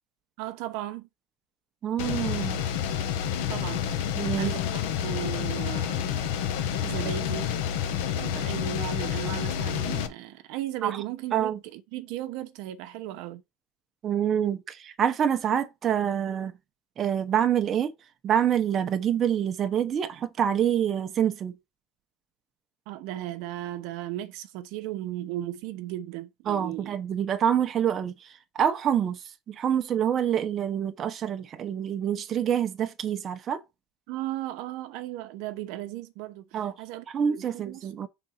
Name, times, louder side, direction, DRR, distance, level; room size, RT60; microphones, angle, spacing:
voice 1, 0.4-1.1 3.5-3.9 4.4-4.7 5.0-6.2 6.8-7.5 8.2-13.4 22.9-27.0 34.1-38.1, right 13 dB, 70° right, 0.8 m, -36 dB
voice 2, 1.8-2.6 4.2-4.5 10.8-11.0 11.3-11.6 14.0-16.5 17.0-17.9 18.2-21.6 26.5-33.6 36.5-36.7 37.1-38.1, right 9 dB, 35° right, 0.8 m, -26 dB
sound 1, 2.0-10.1, left 9 dB, 85° left, 1.0 m, -29 dB
6.0 x 3.9 x 5.7 m
cardioid pair, 140°, 0 cm